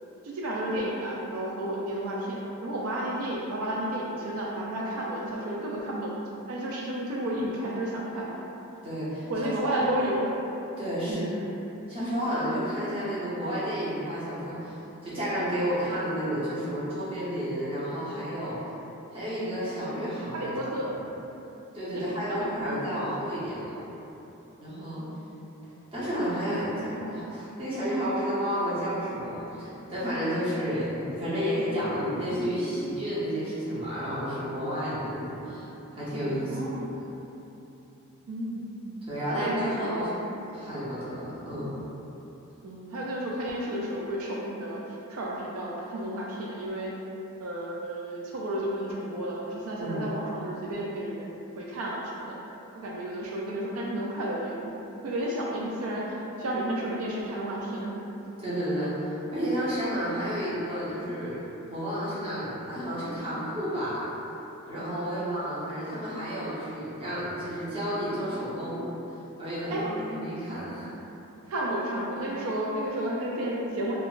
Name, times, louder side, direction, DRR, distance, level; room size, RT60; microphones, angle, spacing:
voice 1, 0.2-6.1 6.5-8.3 9.3-10.3 11.1-11.3 20.3-20.9 21.9-22.8 36.5-36.9 38.3-38.7 39.3-40.1 42.6-46.9 47.4-51.3 51.6-52.4 52.8-54.7 55.0-57.9 65.1-65.3 69.7-69.9 71.5-74.0, right 1 dB, 75° right, -4 dB, 0.4 m, -32 dB
voice 2, 8.8-9.3 9.6-10.1 10.8-11.3 11.9-18.6 19.1-20.5 21.7-23.7 24.1-24.2 24.6-25.0 25.9-36.6 39.1-40.1 40.5-41.8 49.8-50.1 58.4-61.4 61.7-64.0 64.7-68.9 69.4-70.9, equal, 25° right, -10 dB, 0.8 m, -31 dB
3.6 x 2.3 x 2.4 m, 3.0 s
head